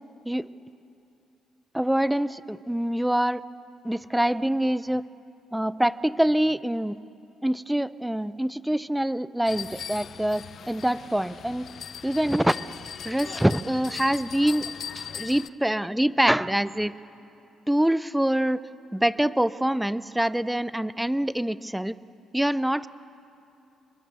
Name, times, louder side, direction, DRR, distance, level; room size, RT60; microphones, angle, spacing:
voice 1, 1.7-3.4 3.8-5.0 5.5-7.0 7.4-11.6 12.0-12.6 13.0-14.7 14.9-16.9 17.7-18.6 18.9-22.0 22.3-22.9, right 1 dB, 5° right, 16 dB, 0.6 m, -25 dB
sound 1, 9.5-15.5, left 8 dB, 55° left, 0.7 m, -39 dB
29.0 x 21.5 x 6.9 m, 2.8 s
cardioid pair, 90°, 0 cm